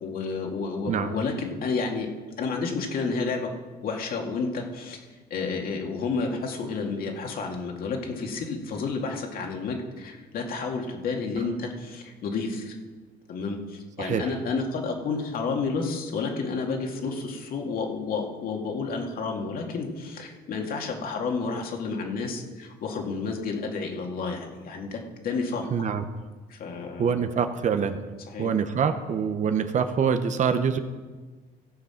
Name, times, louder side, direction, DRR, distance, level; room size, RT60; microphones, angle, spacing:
voice 1, 0.0-2.1 2.4-3.5 3.8-5.0 5.3-12.8 13.3-25.9 26.5-27.2 28.3-28.5, left 4 dB, 60° left, 2 dB, 2.2 m, -30 dB
voice 2, 14.0-14.3 25.7-26.0 27.0-28.0 28.4-30.8, right 7 dB, 45° right, 9 dB, 0.9 m, -25 dB
16.5 x 7.0 x 5.8 m, 1.4 s
cardioid pair, 110°, 17 cm